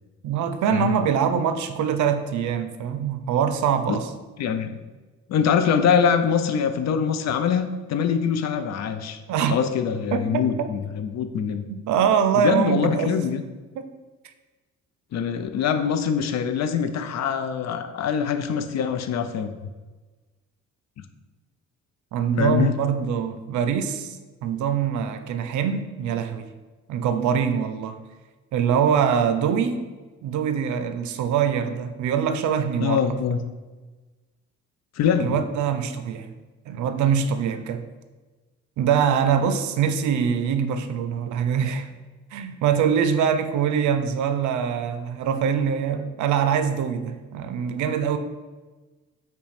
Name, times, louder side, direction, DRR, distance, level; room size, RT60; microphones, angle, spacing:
voice 1, 0.2-4.1 9.3-9.6 10.1-10.5 11.7-13.1 13.8-13.9 22.1-24.2 24.4-26.5 26.9-28.0 28.5-29.8 30.2-33.0 35.2-36.3 36.7-37.8 38.8-41.9 42.3-48.2, right 7 dB, 75° right, 9 dB, 0.5 m, -23 dB
voice 2, 4.4-4.7 5.3-9.2 9.5-11.7 12.4-13.4 15.1-19.7 22.4-22.7 32.8-33.4 35.0-35.4, left 7 dB, 60° left, 8 dB, 0.5 m, -23 dB
5.6 x 2.2 x 4.2 m, 1.3 s
cardioid pair, 90°, 30 cm